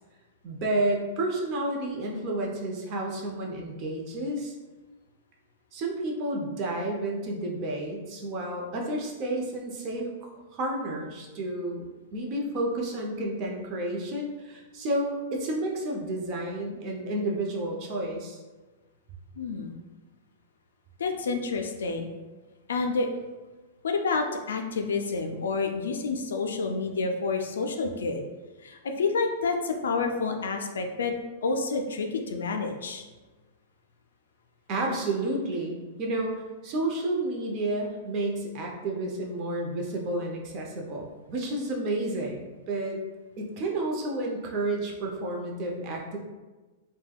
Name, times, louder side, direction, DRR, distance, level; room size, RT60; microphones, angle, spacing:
voice 1, 0.4-4.5 5.7-18.4 34.7-43.0 43.4-46.2, right 1 dB, 45° right, 0 dB, 0.6 m, -31 dB
voice 2, 19.4-19.7 21.0-22.1 22.7-23.1 23.8-28.2 28.6-31.1 31.4-33.0, left 4 dB, 80° left, 5 dB, 0.3 m, -29 dB
3.3 x 2.1 x 2.3 m, 1.2 s
hypercardioid pair, 110°, 0 cm